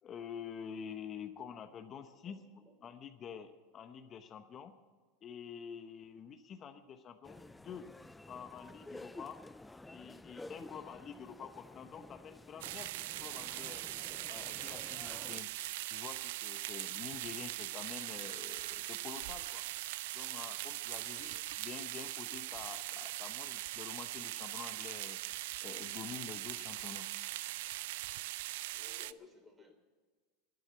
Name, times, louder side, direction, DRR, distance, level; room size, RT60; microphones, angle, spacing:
voice 1, 0.0-2.4 2.8-4.7 5.2-7.9 8.3-9.4 9.9-12.9 13.2-13.9 14.3-15.5 15.9-19.6 20.1-25.2 25.6-27.1 29.0-29.3, left 7 dB, 35° left, 8 dB, 0.9 m, -48 dB
voice 2, 1.9-2.9 10.6-10.9 21.0-21.2 28.7-29.7, right 3 dB, 20° right, 4 dB, 3.4 m, -63 dB
sound 1, 7.2-15.4, left 2 dB, 10° left, 0.3 m, -52 dB
sound 2, 12.6-29.1, right 17 dB, 75° right, 0.4 m, -41 dB
12.0 x 9.9 x 9.8 m, 1.5 s
hypercardioid pair, 105°, 0 cm